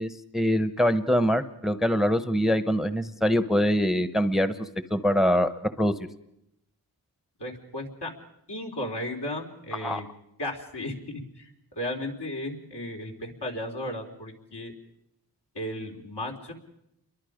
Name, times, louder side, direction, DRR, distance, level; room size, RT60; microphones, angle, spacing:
voice 1, 0.0-5.5 5.8-5.9 9.8-10.0, equal, ahead, 11 dB, 0.9 m, -24 dB
voice 2, 7.4-8.1 8.5-10.1 10.4-10.9 11.4-14.7 15.5-16.5, left 1 dB, 70° left, 0 dB, 4.2 m, -35 dB
29.5 x 23.0 x 5.1 m, 0.82 s
wide cardioid pair, 75°, 42 cm